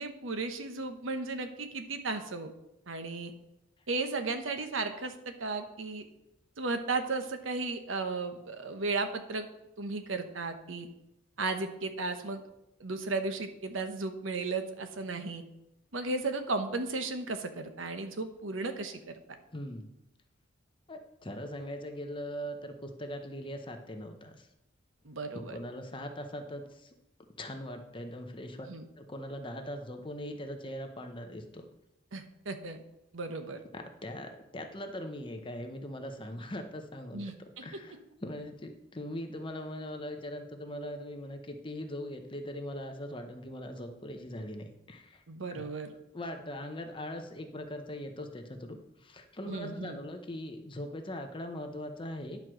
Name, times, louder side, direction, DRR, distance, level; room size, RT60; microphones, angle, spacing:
voice 1, 0.0-2.5 2.9-3.3 3.9-6.0 6.6-9.5 9.8-10.9 11.4-12.4 12.8-15.4 15.9-19.2 25.0-25.6 28.7-28.8 32.1-32.8 33.1-33.6 37.1-37.7 45.3-45.9 49.4-50.0, right 3 dB, 85° right, 8 dB, 1.0 m, -35 dB
voice 2, 19.5-19.9 20.9-24.5 25.3-26.9 27.4-28.7 29.0-31.6 33.7-37.2 37.6-45.2 45.5-45.7 46.1-52.4, left 1 dB, 25° left, 5 dB, 0.9 m, -41 dB
11.0 x 4.6 x 6.2 m, 0.87 s
head